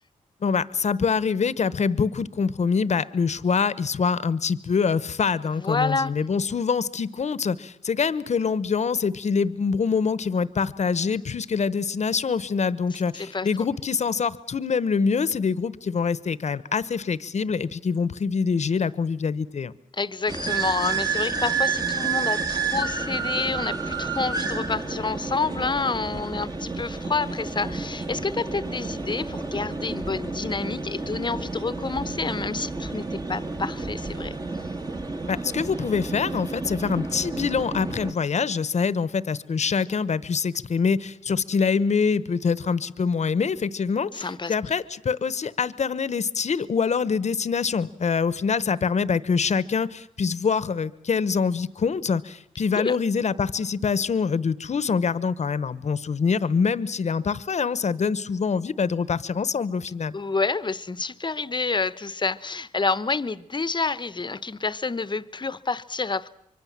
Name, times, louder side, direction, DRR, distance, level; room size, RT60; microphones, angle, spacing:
voice 1, 0.4-19.7 35.3-60.2, left 5 dB, 55° left, 1.0 m, -25 dB
voice 2, 5.6-6.2 13.1-13.5 19.9-34.3 44.1-44.5 52.8-53.0 60.1-66.3, left 4 dB, 35° left, 0.9 m, -28 dB
sound 1, 20.3-38.1, right 4 dB, 30° right, 1.6 m, -30 dB
25.0 x 23.5 x 7.4 m
cardioid pair, 70°, 14 cm